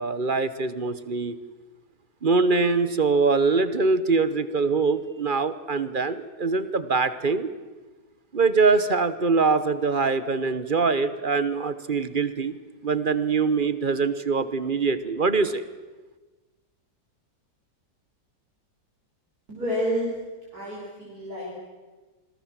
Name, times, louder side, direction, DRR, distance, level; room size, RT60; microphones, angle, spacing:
voice 1, 0.0-1.4 2.2-7.5 8.3-12.5 12.8-15.6, right 4 dB, 35° right, 14 dB, 1.1 m, -23 dB
voice 2, 19.5-20.1 20.5-21.5, equal, 60° right, -5 dB, 6.0 m, -29 dB
27.0 x 21.5 x 7.6 m, 1.3 s
omnidirectional pair, 1.8 m